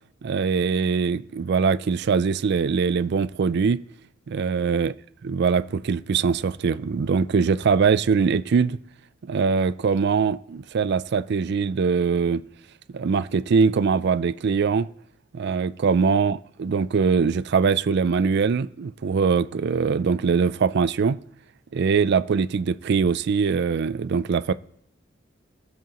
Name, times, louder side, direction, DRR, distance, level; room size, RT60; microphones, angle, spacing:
voice 1, 0.2-3.8 4.3-4.9 5.2-8.8 9.2-12.4 12.9-14.9 15.3-21.2 21.7-24.5, right 5 dB, 60° right, 0.4 m, -22 dB
19.5 x 7.1 x 3.0 m
head